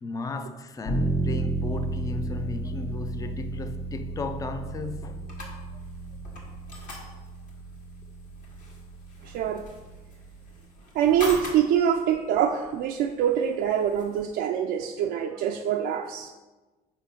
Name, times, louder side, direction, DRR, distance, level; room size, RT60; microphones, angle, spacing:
voice 1, 0.0-5.6, left 3 dB, 20° left, 0.4 m, -35 dB
sound 1, 0.9-10.6, right 2 dB, 70° left, 1.7 m, -33 dB
sound 2, 4.6-14.4, left 2 dB, 50° left, 1.8 m, -44 dB
voice 2, 9.3-9.6 11.0-16.3, right 9 dB, 75° right, 0.4 m, -24 dB
4.9 x 3.7 x 5.6 m
cardioid pair, 110°, 17 cm